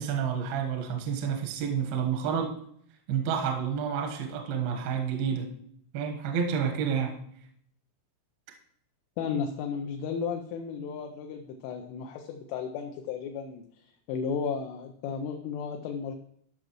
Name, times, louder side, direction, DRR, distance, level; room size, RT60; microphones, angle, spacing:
voice 1, 0.0-2.5 3.1-5.5 5.9-7.2, right 7 dB, 75° right, 2 dB, 2.3 m, -29 dB
voice 2, 9.2-13.6 14.1-16.2, left 6 dB, 80° left, 4 dB, 2.9 m, -34 dB
13.0 x 6.0 x 3.0 m, 0.66 s
omnidirectional pair, 6.0 m